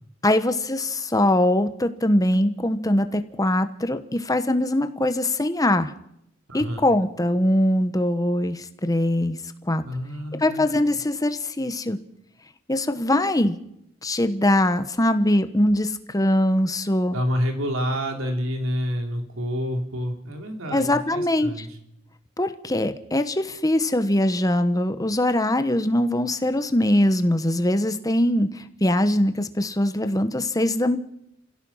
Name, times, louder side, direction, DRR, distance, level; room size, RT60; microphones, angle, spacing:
voice 1, 0.2-5.9 6.5-9.4 9.7-9.8 10.4-12.0 12.7-13.6 14.0-17.2 20.7-21.7 22.4-31.0, left 1 dB, 15° left, 9 dB, 1.2 m, -22 dB
voice 2, 6.5-6.8 9.8-10.6 17.1-21.8, equal, 85° right, 4 dB, 3.4 m, -28 dB
28.5 x 16.0 x 5.7 m, 0.76 s
head